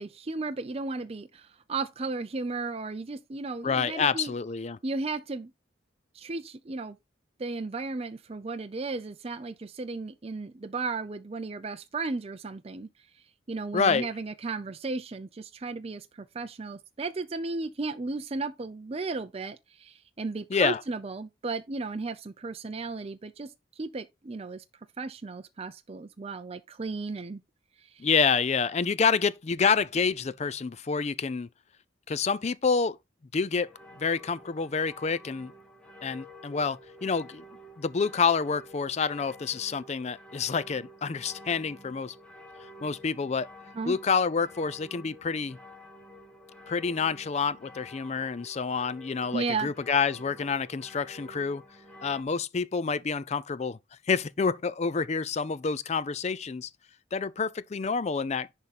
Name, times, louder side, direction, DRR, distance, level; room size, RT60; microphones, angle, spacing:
voice 1, 0.0-4.3 4.8-5.5 6.1-7.0 7.4-12.9 13.5-24.6 25.0-27.4 27.8-28.0 43.8-44.0 49.3-49.7, right 3 dB, 30° right, 0.5 m, -35 dB
voice 2, 3.6-4.8 13.7-14.1 20.5-20.8 28.0-31.5 32.1-33.0 33.3-33.7 34.0-35.5 36.0-37.4 37.8-42.1 42.6-43.5 43.9-45.6 46.7-51.6 52.0-53.8 54.1-56.7 57.1-58.5, left 5 dB, 35° left, 0.4 m, -28 dB
sound 1, 33.5-52.2, left 1 dB, 5° left, 1.2 m, -50 dB
10.5 x 3.7 x 4.1 m
head